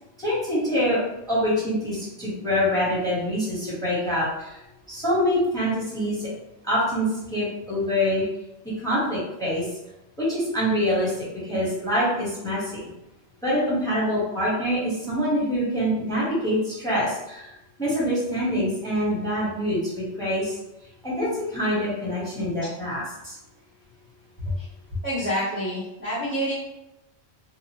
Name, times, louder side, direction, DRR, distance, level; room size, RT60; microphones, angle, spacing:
voice 1, 0.2-1.0 1.3-4.6 4.9-6.3 6.6-8.2 8.8-9.7 10.2-12.8 13.4-17.5 17.8-20.6 21.0-23.4, equal, 5° left, -8 dB, 1.1 m, -25 dB
voice 2, 25.0-26.5, equal, 10° right, -10 dB, 0.8 m, -27 dB
2.9 x 2.3 x 2.8 m, 0.91 s
omnidirectional pair, 1.2 m